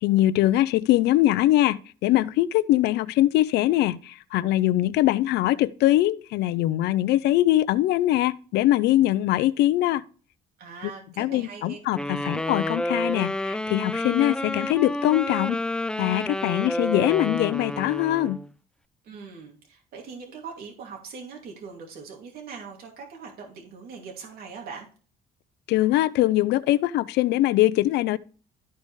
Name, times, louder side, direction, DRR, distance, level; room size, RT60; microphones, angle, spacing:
voice 1, 0.0-10.0 11.2-15.6 16.0-18.4 25.7-28.2, left 15 dB, 80° left, 0.6 m, -22 dB
voice 2, 10.6-11.8 19.0-24.9, right 5 dB, 65° right, 2.7 m, -41 dB
sound 1, 11.9-18.5, left 1 dB, 5° left, 0.4 m, -29 dB
13.0 x 5.3 x 3.3 m
cardioid pair, 110°, 17 cm